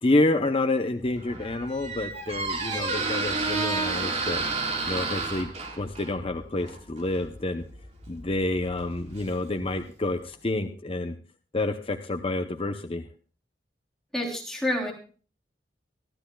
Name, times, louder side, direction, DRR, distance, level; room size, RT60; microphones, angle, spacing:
voice 1, 0.0-4.4 4.8-5.5 5.8-7.6 8.1-11.2 11.5-13.0, left 2 dB, 30° left, 6 dB, 0.7 m, -28 dB
Squeak, 1.1-9.8, right 3 dB, 40° right, 2.7 m, -32 dB
voice 2, 14.1-14.9, left 1 dB, 5° left, -1 dB, 3.4 m, -28 dB
25.5 x 12.5 x 2.3 m, 0.39 s
head